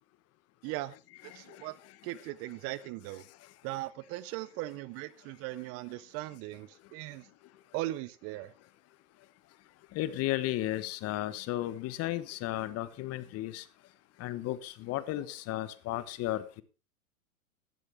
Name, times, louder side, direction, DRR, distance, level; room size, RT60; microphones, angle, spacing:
voice 1, 0.6-1.0 1.2-3.3 3.6-7.3 7.7-8.5, right 17 dB, 35° right, 0.6 m, -39 dB
voice 2, 1.3-1.7 9.9-13.7 14.2-16.6, left 15 dB, 35° left, 1.2 m, -34 dB
15.0 x 12.5 x 3.5 m
hypercardioid pair, 100°, 43 cm